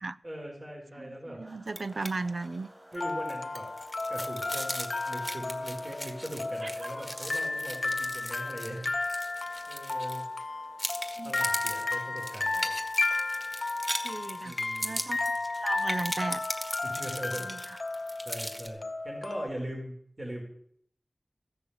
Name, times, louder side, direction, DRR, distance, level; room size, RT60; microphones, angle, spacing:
voice 1, 0.2-1.4 2.9-3.7 4.1-8.9 9.7-10.2 11.2-12.8 14.4-15.0 16.8-17.5 17.9-20.4, equal, 50° right, 4.2 m, -40 dB
voice 2, 1.0-2.7 6.6-6.7 6.9-7.4 11.2-11.3 14.0-15.2 15.6-16.4 17.4-17.8, right 3 dB, 90° right, 0.5 m, -36 dB
sound 1, 1.4-18.1, right 1 dB, 65° right, 4.0 m, -58 dB
sound 2, 1.7-2.1 2.4-2.6 2.9-10.4 10.8-18.7, equal, 5° right, 1.6 m, -39 dB
sound 3, 3.0-19.5, left 3 dB, 80° left, 0.6 m, -33 dB
14.5 x 6.9 x 7.9 m
wide cardioid pair, 50°, 0 cm